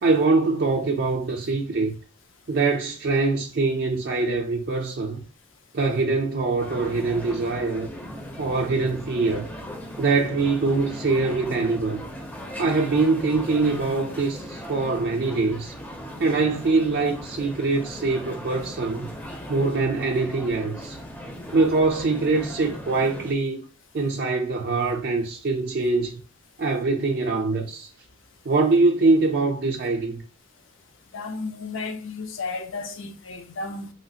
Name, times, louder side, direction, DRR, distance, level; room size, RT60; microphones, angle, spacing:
voice 1, 0.0-1.9 2.5-5.2 5.7-7.9 8.4-9.5 10.0-12.0 12.6-15.7 16.2-19.1 19.5-21.0 21.5-23.6 23.9-26.2 26.6-27.9 28.5-30.2, right 3 dB, 50° right, 0.4 m, -23 dB
sound 1, 6.6-23.3, equal, 10° left, 0.5 m, -38 dB
voice 2, 31.1-33.9, left 3 dB, 70° left, 0.6 m, -33 dB
3.1 x 2.4 x 2.7 m
head